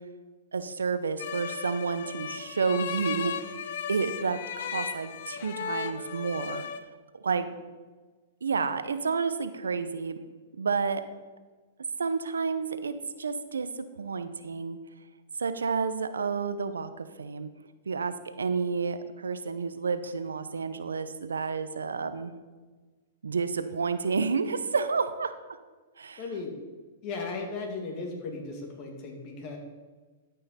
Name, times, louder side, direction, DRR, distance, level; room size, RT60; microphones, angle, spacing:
voice 1, 0.5-6.7 7.1-7.6 8.4-10.2 10.6-11.0 12.0-14.8 15.4-17.5 17.9-22.3 23.2-25.3 26.0-26.2, right 5 dB, 90° right, 11 dB, 0.6 m, -30 dB
sound 1, 1.2-6.8, left 8 dB, 65° left, 0.6 m, -36 dB
voice 2, 26.2-26.6 27.0-29.6, left 3 dB, 40° left, 2 dB, 2.3 m, -36 dB
12.5 x 5.6 x 4.2 m, 1.3 s
hypercardioid pair, 120°, 0 cm